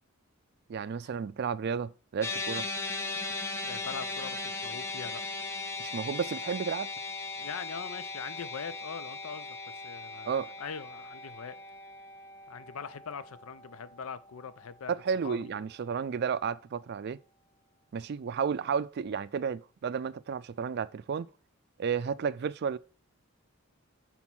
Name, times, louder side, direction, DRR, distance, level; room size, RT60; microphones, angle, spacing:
voice 1, 0.7-2.7 5.8-6.9 10.3-10.5 14.9-17.2 17.9-21.3 21.8-22.8, right 6 dB, 50° right, 0.3 m, -32 dB
sound 1, 2.2-14.7, left 3 dB, 15° left, 0.6 m, -38 dB
voice 2, 3.6-5.2 7.4-11.6 12.5-14.9 15.2-15.5, left 6 dB, 90° left, 0.6 m, -42 dB
6.1 x 4.1 x 5.8 m
head